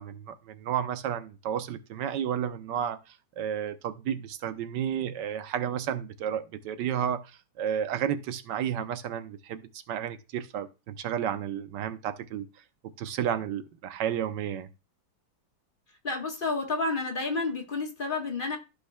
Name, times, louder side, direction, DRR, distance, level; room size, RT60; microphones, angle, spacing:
voice 1, 0.0-3.0 3.4-7.3 7.6-12.5 13.0-14.7, right 9 dB, 90° right, 1.4 m, -32 dB
voice 2, 16.0-18.6, left 3 dB, 30° left, 1.3 m, -30 dB
14.0 x 5.3 x 2.2 m
omnidirectional pair, 1.9 m